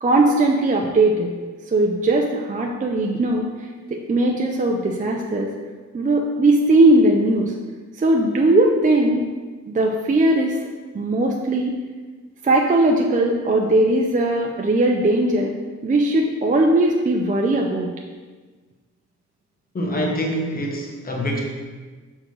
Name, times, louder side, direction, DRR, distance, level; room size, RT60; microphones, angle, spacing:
voice 1, 0.0-1.3 1.7-5.5 5.9-7.5 8.0-9.3 9.7-10.6 10.9-11.7 12.4-15.5 15.8-17.9, right 2 dB, 25° right, 0 dB, 0.5 m, -19 dB
voice 2, 19.7-21.4, equal, 30° left, 0 dB, 1.0 m, -25 dB
6.3 x 3.8 x 6.1 m, 1.4 s
wide cardioid pair, 180°, 29 cm